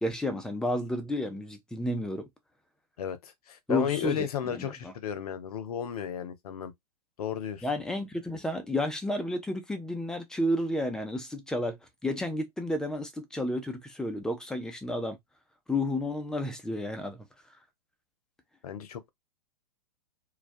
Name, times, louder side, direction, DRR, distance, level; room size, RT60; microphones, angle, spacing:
voice 1, 0.0-2.3 3.7-4.2 4.6-4.9 7.6-11.8 12.0-15.2 15.7-17.3, left 1 dB, 5° left, 0.4 m, -31 dB
voice 2, 3.0-6.7 7.2-7.7 18.6-19.1, left 8 dB, 65° left, 0.6 m, -34 dB
2.2 x 2.2 x 2.4 m
hypercardioid pair, 115°, 20 cm